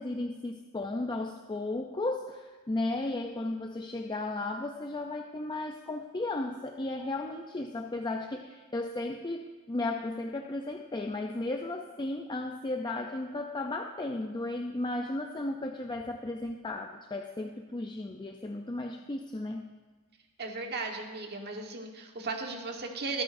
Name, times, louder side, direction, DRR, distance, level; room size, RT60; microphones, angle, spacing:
voice 1, 0.0-19.7, left 2 dB, 20° left, 3 dB, 0.5 m, -35 dB
voice 2, 20.4-23.2, right 3 dB, 45° right, 2 dB, 1.5 m, -36 dB
24.0 x 8.6 x 2.6 m, 1.3 s
head